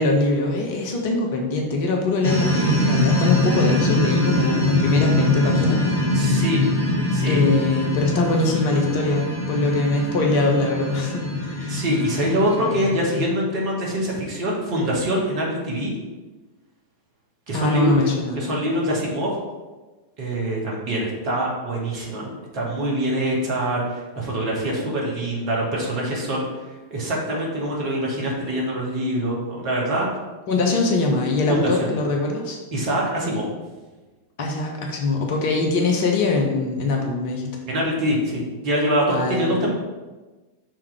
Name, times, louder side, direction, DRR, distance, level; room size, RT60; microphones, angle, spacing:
voice 1, 0.0-5.8 7.2-11.8 17.5-18.4 30.5-32.6 34.4-37.5 39.1-39.5, left 2 dB, 50° left, 1 dB, 1.2 m, -22 dB
sound 1, 2.2-13.3, left 1 dB, 85° right, 1.5 m, -23 dB
voice 2, 6.1-6.6 7.1-7.4 11.7-15.9 17.5-17.9 18.4-19.3 20.2-26.4 26.9-30.1 31.5-31.9 32.7-33.5 37.7-39.7, right 1 dB, 45° right, -3 dB, 2.0 m, -24 dB
6.3 x 3.6 x 4.9 m, 1.2 s
figure-of-eight pair, 90°, 0 cm